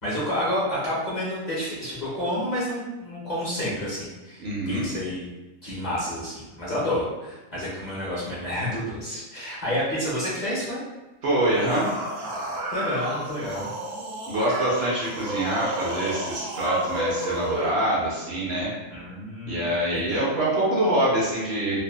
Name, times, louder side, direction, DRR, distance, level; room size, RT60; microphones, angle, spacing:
voice 1, 0.0-5.3 5.6-10.8 12.7-13.7 18.9-20.2, equal, 40° left, -8 dB, 0.8 m, -29 dB
voice 2, 4.4-4.9 11.2-11.9 14.3-18.7 19.5-21.8, right 1 dB, 60° right, -6 dB, 0.8 m, -25 dB
sound 1, 11.4-17.7, right 1 dB, 90° right, 1.0 m, -31 dB
2.6 x 2.2 x 2.3 m, 1.1 s
omnidirectional pair, 1.3 m